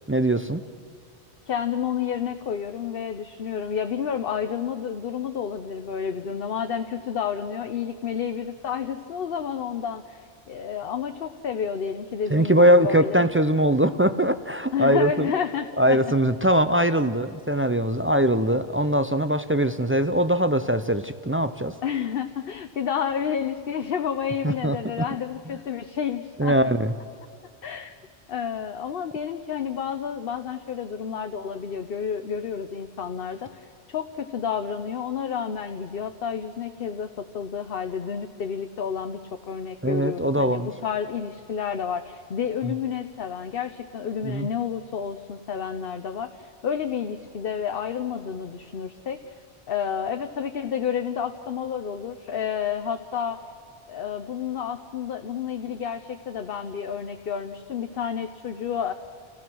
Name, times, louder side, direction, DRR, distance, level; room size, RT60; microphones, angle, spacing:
voice 1, 0.1-0.6 12.3-15.3 15.8-21.7 24.4-24.8 26.4-26.9 39.8-40.7 44.2-44.5, right 1 dB, 20° right, 10 dB, 0.3 m, -21 dB
voice 2, 1.5-13.3 14.7-16.1 21.8-26.6 27.6-27.9 28.3-49.3 49.7-53.4 53.9-58.9, left 7 dB, 60° left, 7 dB, 1.0 m, -30 dB
30.0 x 16.0 x 6.2 m, 2.4 s
omnidirectional pair, 1.1 m